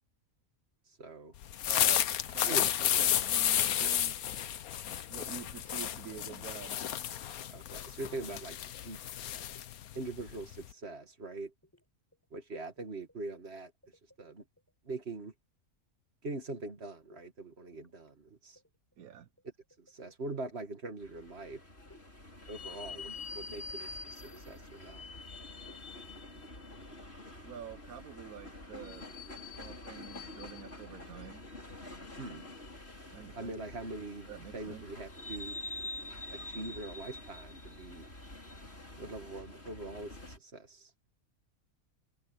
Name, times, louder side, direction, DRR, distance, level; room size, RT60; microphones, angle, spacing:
voice 1, 1.0-1.3 2.4-3.1 7.5-8.6 8.8-9.0 9.9-11.5 12.3-13.7 14.2-14.4 14.8-15.3 16.2-18.6 19.8-21.6 22.5-25.0 32.2-32.5 33.4-35.6 36.3-38.1 39.0-40.9, right 2 dB, 45° right, 2.4 m, -42 dB
sound 1, 1.4-10.7, left 10 dB, 85° left, 1.3 m, -32 dB
voice 2, 1.7-4.3 5.1-6.8 19.0-19.3 27.4-29.1 29.4-31.4 33.1-33.6 34.3-34.8, right 9 dB, 85° right, 1.4 m, -47 dB
sound 2, 7.6-7.8 9.3-9.7 10.1-10.4 11.6-11.9 12.1-12.8 13.1-14.7 17.0-17.2 17.6-17.9 18.2-18.3 18.6-20.3 21.9-22.1 22.6-24.5 24.9-25.3 25.6-25.8 26.2-26.5, left 1 dB, 10° left, 5.7 m, -63 dB
sound 3, 21.0-40.4, left 2 dB, 45° left, 5.5 m, -46 dB
omnidirectional pair, 1.5 m